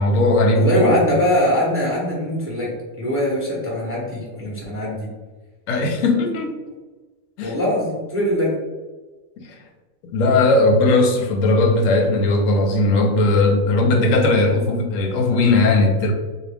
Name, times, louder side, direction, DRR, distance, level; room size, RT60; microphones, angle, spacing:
voice 1, 0.0-0.9 5.7-6.6 7.4-7.6 9.4-9.5 10.1-16.1, left 2 dB, 75° left, 3 dB, 1.0 m, -18 dB
voice 2, 0.5-5.1 7.4-8.5, left 1 dB, 15° right, -5 dB, 0.7 m, -22 dB
3.5 x 2.4 x 3.4 m, 1.3 s
omnidirectional pair, 1.4 m